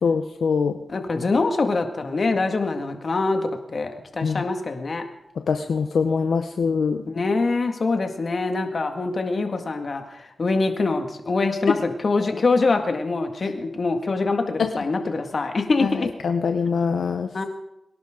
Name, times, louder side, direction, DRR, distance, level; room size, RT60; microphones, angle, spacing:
voice 1, 0.0-0.7 4.2-4.4 5.5-7.0 14.6-14.7 15.8-15.9 16.2-17.3, left 5 dB, 85° left, 6 dB, 0.7 m, -23 dB
voice 2, 0.9-3.4 3.7-5.0 7.0-16.1 17.3-17.4, left 3 dB, 60° left, 5 dB, 2.0 m, -24 dB
23.5 x 11.0 x 3.8 m, 0.87 s
cardioid pair, 55°, 0 cm